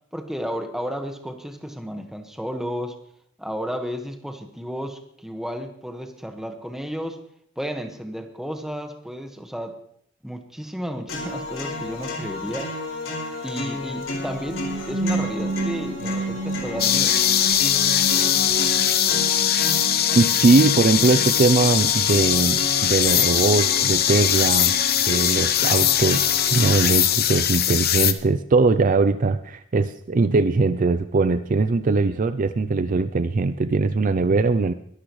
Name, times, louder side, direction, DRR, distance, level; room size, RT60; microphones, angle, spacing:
voice 1, 0.1-2.9 3.4-7.2 7.6-9.8 10.2-12.7 13.4-17.2, equal, ahead, 4 dB, 1.5 m, -32 dB
sound 1, 11.1-27.1, left 2 dB, 80° left, 4.6 m, -32 dB
sound 2, 14.0-21.8, right 2 dB, 75° right, 3.7 m, -31 dB
sound 3, 16.8-28.1, left 10 dB, 50° left, 0.9 m, -21 dB
voice 2, 20.1-24.7 25.1-34.7, right 3 dB, 40° right, 12 dB, 0.4 m, -20 dB
22.5 x 12.5 x 3.2 m, 0.68 s
head